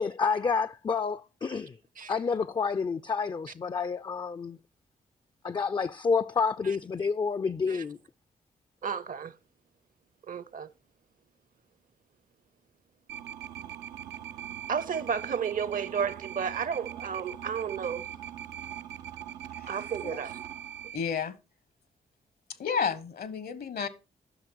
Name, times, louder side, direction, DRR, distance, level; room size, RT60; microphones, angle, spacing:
voice 1, 0.0-1.7 2.1-4.6 5.4-8.0, left 5 dB, 25° left, 0.4 m, -29 dB
voice 2, 8.8-9.3 10.3-10.7 14.7-18.1 19.7-20.4, right 7 dB, 55° right, 0.7 m, -32 dB
sound 1, 13.1-21.0, right 10 dB, 90° right, 0.5 m, -41 dB
voice 3, 20.9-21.4 22.6-23.9, left 6 dB, 65° left, 1.0 m, -31 dB
10.0 x 6.0 x 4.6 m
supercardioid pair, 40°, 17 cm